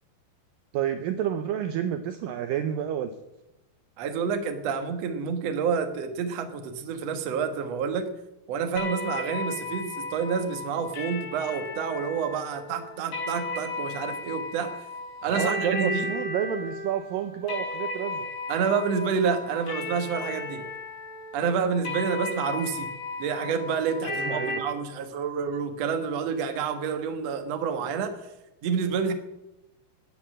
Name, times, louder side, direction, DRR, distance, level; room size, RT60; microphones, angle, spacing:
voice 1, 0.7-3.1 15.2-18.3 24.1-24.6, right 10 dB, 85° right, 9 dB, 2.0 m, -30 dB
voice 2, 4.0-8.1 8.5-14.8 15.2-16.1 18.5-20.6 21.3-22.9 23.2-28.2 28.6-29.1, right 6 dB, 65° right, 7 dB, 1.7 m, -28 dB
sound 1, 8.8-24.6, left 2 dB, 90° left, 6.4 m, -35 dB
14.5 x 8.7 x 7.4 m, 0.95 s
omnidirectional pair, 4.9 m